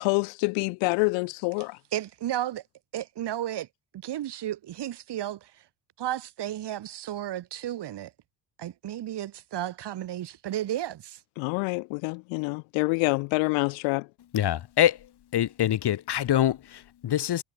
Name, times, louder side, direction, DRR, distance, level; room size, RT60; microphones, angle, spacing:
voice 1, 0.0-1.8 11.4-14.1, left 32 dB, 75° left, 1.1 m, -27 dB
voice 2, 1.9-2.6 2.9-3.7 4.0-5.5 6.0-8.1 8.6-11.2, right 12 dB, 60° right, 5.4 m, -33 dB
voice 3, 14.3-15.0 15.3-17.4, left 11 dB, 55° left, 4.9 m, -25 dB
hypercardioid pair, 60°, 46 cm